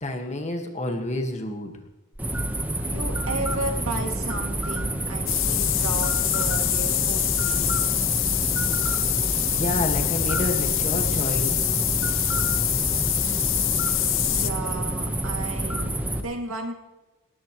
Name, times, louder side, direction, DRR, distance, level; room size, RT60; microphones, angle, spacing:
voice 1, 0.0-1.7 9.1-11.8, left 1 dB, 30° left, 4 dB, 1.9 m, -29 dB
sound 1, 2.2-16.2, right 1 dB, 10° right, 1.2 m, -28 dB
voice 2, 2.8-7.7 14.2-16.7, right 2 dB, 70° right, 3 dB, 2.6 m, -34 dB
sound 2, 5.3-14.5, left 15 dB, 60° left, 0.7 m, -25 dB
19.5 x 18.5 x 3.2 m, 1.1 s
head